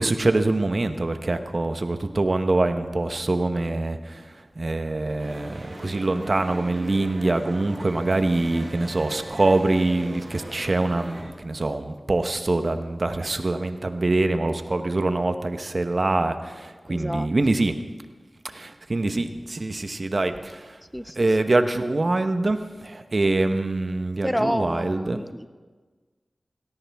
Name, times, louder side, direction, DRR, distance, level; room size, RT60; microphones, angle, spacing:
voice 1, 0.0-4.3 4.6-17.7 18.4-20.8 21.2-25.2, right 2 dB, 55° right, 8 dB, 1.0 m, -24 dB
sound 1, 5.2-11.2, right 1 dB, 75° right, 4.6 m, -39 dB
voice 2, 16.9-17.3 20.9-21.2 24.2-25.5, equal, 5° left, 12 dB, 0.6 m, -28 dB
18.0 x 16.5 x 3.6 m, 1.4 s
cardioid pair, 40°, 0 cm